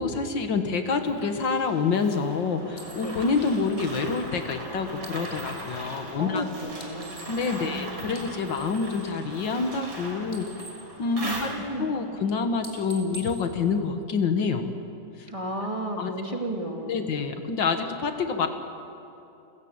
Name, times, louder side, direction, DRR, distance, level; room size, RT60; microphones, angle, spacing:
voice 1, 0.0-6.4 7.3-10.5 11.0-11.5 11.8-14.7 15.2-15.3 16.0-16.1 16.8-18.5, left 5 dB, 70° left, 7 dB, 2.1 m, -27 dB
sound 1, 1.0-12.0, right 1 dB, 75° right, 4.9 m, -39 dB
sound 2, 2.8-5.8 6.7-7.8 8.0-9.9 10.2-11.8 12.1-12.3 12.6-14.4, right 2 dB, 20° left, 3.3 m, -48 dB
voice 2, 6.2-7.2 7.6-8.3 11.2-11.9 15.3-17.1, right 1 dB, 15° right, 1 dB, 2.3 m, -33 dB
30.0 x 16.0 x 8.8 m, 2.8 s
omnidirectional pair, 2.1 m